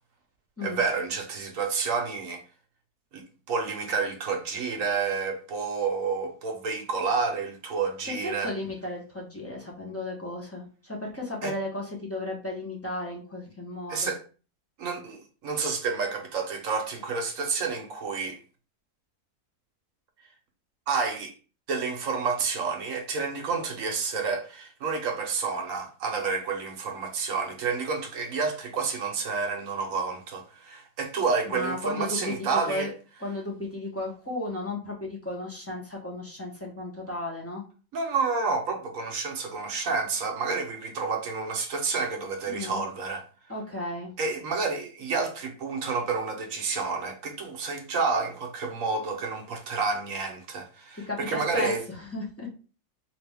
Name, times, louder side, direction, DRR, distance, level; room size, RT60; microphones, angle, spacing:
voice 1, 0.6-2.4 3.1-8.5 11.4-11.6 13.9-14.2 14.8-18.4 20.9-21.3 21.7-32.9 37.9-43.3 44.2-51.8, right 4 dB, 65° right, 1.1 m, -29 dB
voice 2, 8.1-14.1 31.5-32.9 33.2-37.6 42.5-42.9 43.5-44.1 50.9-52.5, left 1 dB, 15° left, 0.7 m, -34 dB
3.5 x 2.8 x 3.4 m
omnidirectional pair, 1.6 m